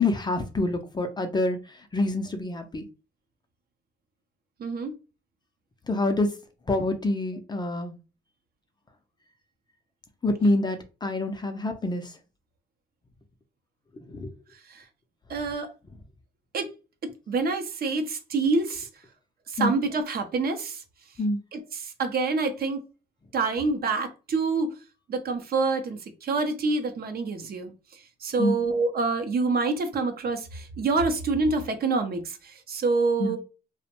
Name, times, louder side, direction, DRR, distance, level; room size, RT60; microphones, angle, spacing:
voice 1, 0.0-1.6 1.9-2.8 5.9-6.3 6.7-7.9 10.2-12.1 14.1-14.3 19.6-19.8 21.2-21.4 28.4-28.6 33.2-33.4, left 2 dB, 20° left, 0.4 m, -26 dB
voice 2, 4.6-4.9 14.7-14.8 15.3-15.7 16.5-16.7 17.0-18.9 19.5-20.8 21.5-22.8 23.3-24.7 25.1-27.7 28.2-33.4, right 3 dB, 50° right, 0.6 m, -27 dB
2.5 x 2.1 x 2.8 m
cardioid pair, 90°, 20 cm